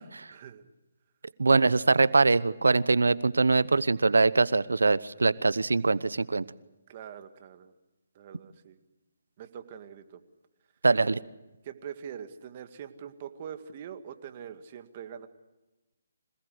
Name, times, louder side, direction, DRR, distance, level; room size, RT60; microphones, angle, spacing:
voice 1, 0.3-0.6 6.9-7.7 8.2-8.8 9.4-10.2 11.6-15.3, right 8 dB, 35° right, 8 dB, 2.0 m, -43 dB
voice 2, 1.4-6.4 10.8-11.2, right 3 dB, 90° right, 18 dB, 0.9 m, -23 dB
26.5 x 18.5 x 8.0 m, 1.0 s
hypercardioid pair, 155°, 0 cm